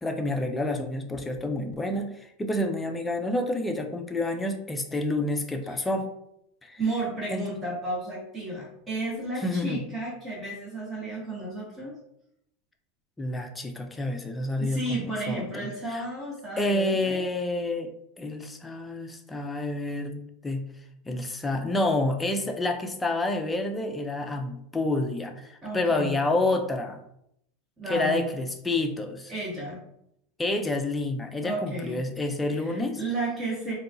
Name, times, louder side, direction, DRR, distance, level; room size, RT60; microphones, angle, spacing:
voice 1, 0.0-6.1 6.6-6.8 7.3-7.5 9.4-9.8 13.2-16.0 16.6-17.9 18.2-20.7 21.1-27.0 27.9-29.3 30.4-33.0, left 2 dB, 10° left, 5 dB, 0.4 m, -29 dB
voice 2, 6.8-11.9 14.6-17.2 25.6-26.1 27.8-28.3 29.3-29.8 31.4-32.0 32.5-33.7, right 2 dB, 20° right, -6 dB, 1.3 m, -33 dB
4.0 x 2.2 x 2.6 m, 0.77 s
supercardioid pair, 125°, 0 cm